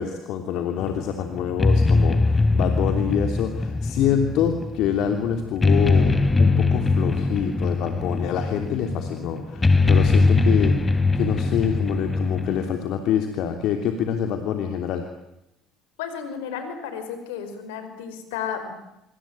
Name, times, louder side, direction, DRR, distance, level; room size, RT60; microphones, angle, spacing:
voice 1, 0.0-15.1, left 8 dB, 65° left, 5 dB, 3.0 m, -26 dB
sound 1, 0.8-12.6, left 3 dB, 20° left, 3.4 m, -21 dB
voice 2, 16.0-18.7, left 7 dB, 80° left, 9 dB, 5.4 m, -33 dB
26.0 x 25.0 x 9.1 m, 0.85 s
hypercardioid pair, 65°, 0 cm